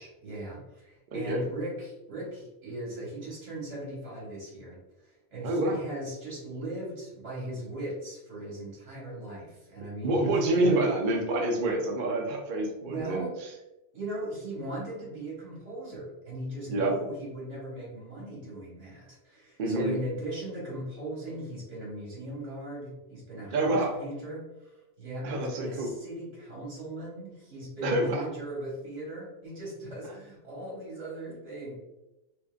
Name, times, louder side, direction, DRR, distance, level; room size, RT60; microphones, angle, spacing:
voice 1, 0.0-10.3 10.5-10.9 12.8-13.3 13.9-24.7 25.0-31.8, right 1 dB, 85° right, -6 dB, 1.9 m, -38 dB
voice 2, 1.1-1.4 5.4-5.8 10.0-13.5 16.7-16.9 19.6-19.9 23.5-23.9 25.2-25.9 27.8-28.2 30.0-30.1, right 2 dB, 55° right, 1 dB, 0.7 m, -27 dB
4.4 x 2.5 x 2.4 m, 0.97 s
omnidirectional pair, 1.2 m